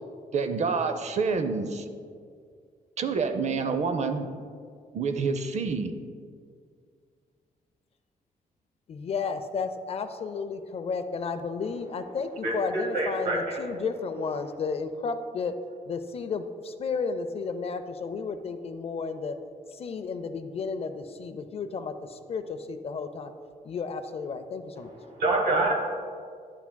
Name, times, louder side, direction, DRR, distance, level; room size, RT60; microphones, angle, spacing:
voice 1, 0.3-1.9 3.0-4.3 4.9-5.9, right 4 dB, 50° right, 8 dB, 0.5 m, -27 dB
voice 2, 8.9-15.5 15.9-19.3 19.8-21.9 22.3-23.3 23.7-24.9, left 5 dB, 40° left, 10 dB, 0.4 m, -32 dB
voice 3, 12.4-13.8 24.8-25.7, right 2 dB, 85° right, -2 dB, 1.1 m, -27 dB
9.6 x 5.8 x 2.2 m, 2.1 s
cardioid pair, 135°, 15 cm